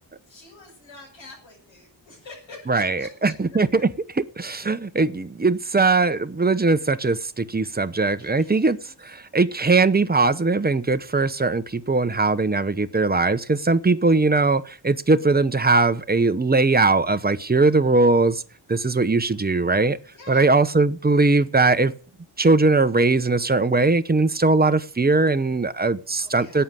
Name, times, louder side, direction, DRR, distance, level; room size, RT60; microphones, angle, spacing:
voice 1, 0.3-3.3 5.6-5.8 7.0-7.1 8.2-8.9 20.1-20.5 26.2-26.6, left 3 dB, 90° left, 7.2 m, -46 dB
voice 2, 2.7-3.9 4.4-8.8 9.0-18.4 18.7-20.0 20.3-21.9 22.4-26.6, right 3 dB, 20° right, 0.8 m, -20 dB
11.5 x 9.1 x 9.8 m
wide cardioid pair, 135°, 44 cm